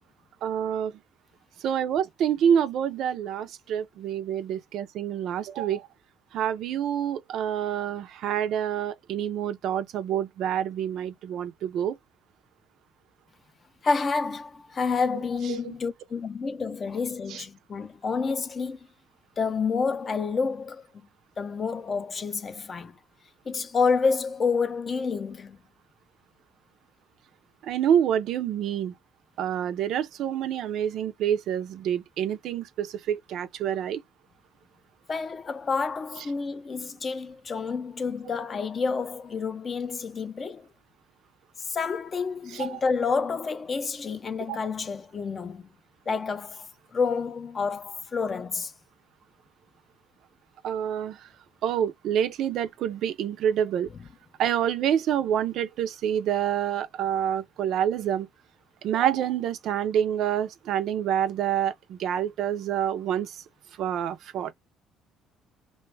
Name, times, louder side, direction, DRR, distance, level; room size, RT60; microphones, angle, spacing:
voice 1, 0.4-0.9 1.6-5.9 6.3-12.0 15.5-15.7 17.3-17.4 27.6-28.9 29.4-34.0 42.5-42.8 44.5-44.6 50.6-51.2 51.6-53.9 54.4-58.3 58.8-63.4 63.8-64.5, right 9 dB, 65° right, 0.4 m, -27 dB
voice 2, 13.8-18.8 19.4-20.8 21.4-23.0 23.5-25.6 35.1-40.7 41.7-45.7 46.1-46.7 46.9-48.7, left 5 dB, 35° left, 0.4 m, -29 dB
2.4 x 2.2 x 3.1 m
cardioid pair, 105°, 0 cm